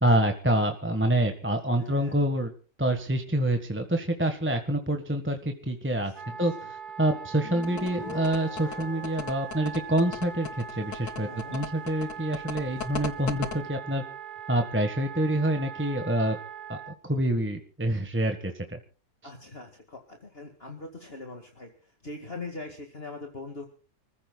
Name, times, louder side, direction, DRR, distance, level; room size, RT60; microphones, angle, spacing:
voice 1, 0.0-2.5 2.8-6.1 6.4-6.5 7.0-14.0 14.5-16.4 16.7-18.8, right 1 dB, 10° right, 5 dB, 1.5 m, -27 dB
voice 2, 1.8-2.3 5.9-6.4 11.2-11.6 19.2-21.7 22.0-23.7, left 3 dB, 40° left, 3 dB, 2.3 m, -42 dB
Wind instrument woodwind instrument, 6.1-17.0, right 6 dB, 35° right, 1.3 m, -41 dB
Guitar, 7.4-10.9, left 2 dB, 80° left, 2.6 m, -44 dB
sound 1, 7.6-13.5, left 6 dB, 60° left, 1.7 m, -36 dB
29.0 x 15.0 x 2.4 m, 0.37 s
omnidirectional pair, 1.5 m